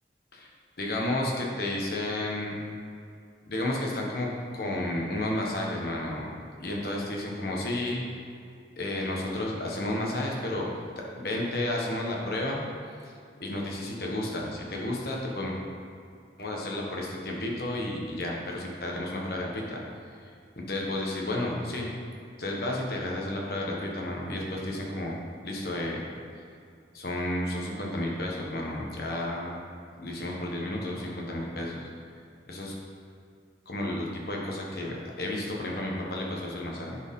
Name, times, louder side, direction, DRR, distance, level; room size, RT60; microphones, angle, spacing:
voice 1, 0.8-2.6 3.5-4.3 4.5-6.2 6.6-8.0 8.8-10.7 11.0-12.6 13.0-13.1 13.4-15.5 16.4-19.8 20.7-21.9 22.4-25.2 25.4-26.0 26.9-29.5 30.0-31.9 32.5-32.7 33.7-37.0, left 1 dB, 60° left, -2 dB, 1.3 m, -32 dB
10.5 x 5.1 x 3.7 m, 2.3 s
head